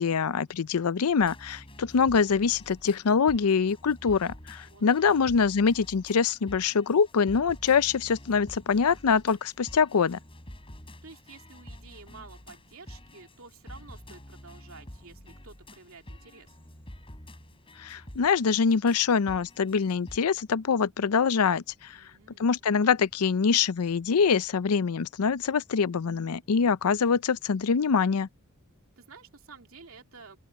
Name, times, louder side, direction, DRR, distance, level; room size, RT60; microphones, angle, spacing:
voice 1, 0.0-10.2 17.8-22.0 22.4-28.3, left 5 dB, 85° left, 0.5 m, -24 dB
sound 1, 1.2-20.2, left 1 dB, 25° left, 3.6 m, -48 dB
voice 2, 4.6-5.0 11.0-16.6 21.9-22.5 29.0-30.4, right 4 dB, 65° right, 2.9 m, -51 dB
open air
head